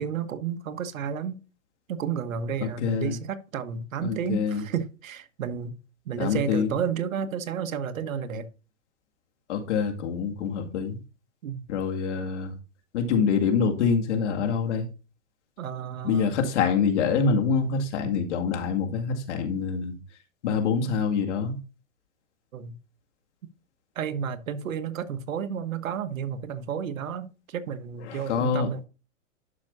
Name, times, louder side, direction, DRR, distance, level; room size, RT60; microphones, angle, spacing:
voice 1, 0.0-1.4 1.9-5.8 6.0-8.5 11.4-11.6 15.6-16.3 22.5-22.8 23.9-28.8, right 7 dB, 90° right, 1.3 m, -31 dB
voice 2, 2.6-3.2 4.0-4.6 6.2-6.7 9.5-11.0 11.7-12.5 12.9-14.9 16.0-19.9 20.4-21.5 28.1-28.9, left 6 dB, 60° left, 2.2 m, -25 dB
11.5 x 6.0 x 2.7 m
hypercardioid pair, 155°, 39 cm